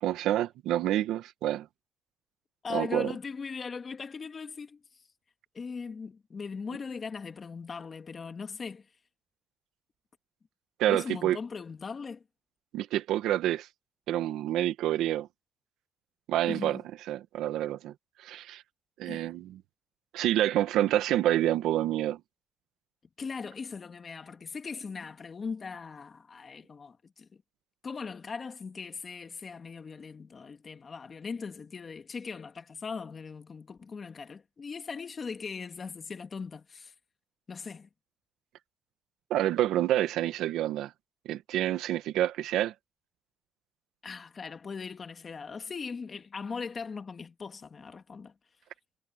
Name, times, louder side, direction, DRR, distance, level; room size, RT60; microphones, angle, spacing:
voice 1, 0.0-1.7 2.7-3.1 10.8-11.4 12.7-13.7 14.1-15.3 16.3-16.8 17.1-17.9 18.2-18.6 19.0-19.6 20.1-22.2 39.3-40.9 41.2-42.7, right 13 dB, 90° right, 1.5 m, -28 dB
voice 2, 2.6-4.8 5.5-8.9 10.9-12.2 16.5-16.8 19.1-19.3 23.2-27.4 27.8-36.9 37.5-37.9 44.0-48.3, left 5 dB, 40° left, 2.1 m, -39 dB
cardioid pair, 90°, 0 cm